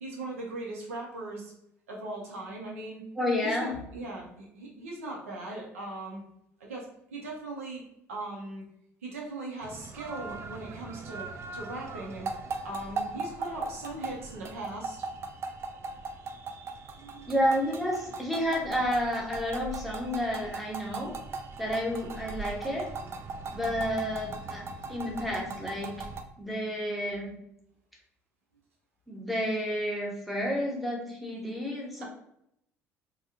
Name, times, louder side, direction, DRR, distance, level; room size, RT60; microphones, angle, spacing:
voice 1, 0.0-1.5 1.9-3.0 3.4-6.2 6.6-7.8 8.1-8.6 9.0-12.3 12.6-15.1 16.9-17.3 24.8-25.1 26.8-26.9, right 2 dB, 75° right, -2 dB, 0.6 m, -39 dB
voice 2, 3.2-3.7 17.3-21.1 21.6-22.9 23.5-24.6 24.9-26.0 26.4-27.3 29.1-32.0, equal, ahead, -2 dB, 1.0 m, -30 dB
sound 1, 9.6-26.2, right 3 dB, 35° right, 0.4 m, -39 dB
3.4 x 2.2 x 2.7 m, 0.75 s
figure-of-eight pair, 55°, 7 cm